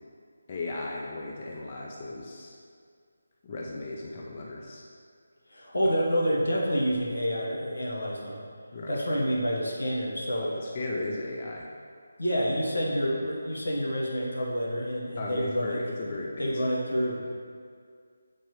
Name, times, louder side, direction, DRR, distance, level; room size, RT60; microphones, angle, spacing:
voice 1, 0.5-2.5 3.4-4.8 8.7-8.9 10.4-11.7 15.2-16.6, left 2 dB, 35° left, -3 dB, 0.5 m, -36 dB
voice 2, 5.5-8.4 8.9-10.5 12.2-15.8 16.0-16.1 16.4-17.2, equal, 85° left, -3 dB, 1.3 m, -28 dB
6.7 x 4.5 x 3.1 m, 2.1 s
figure-of-eight pair, 160°, 0 cm